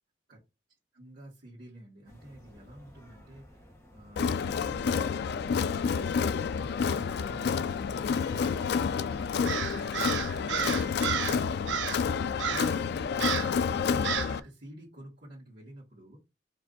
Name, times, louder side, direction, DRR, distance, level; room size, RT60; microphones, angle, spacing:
voice 1, 0.9-8.7 9.9-16.2, right 1 dB, 60° right, -8 dB, 1.8 m, -51 dB
sound 1, 2.1-13.9, equal, 15° left, 1.2 m, -54 dB
Crowd, 4.2-14.4, left 6 dB, 65° left, 0.3 m, -29 dB
Crow, 9.4-11.4 11.7-12.1 12.4-12.8 13.2-13.6 14.0-14.4, right 8 dB, 90° right, 0.6 m, -32 dB
4.6 x 2.6 x 4.0 m, 0.26 s
head